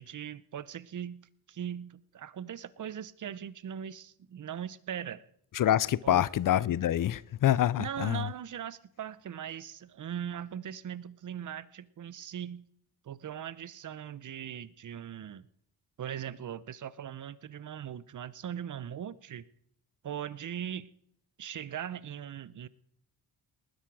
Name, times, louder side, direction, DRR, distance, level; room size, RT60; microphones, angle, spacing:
voice 1, 0.0-5.3 6.0-6.3 7.8-12.6 13.0-15.5 16.0-19.4 20.0-20.9 21.4-22.7, right 9 dB, 50° right, 0.8 m, -40 dB
voice 2, 5.5-8.3, left 12 dB, 55° left, 0.6 m, -26 dB
19.5 x 10.0 x 4.9 m
cardioid pair, 85°, 38 cm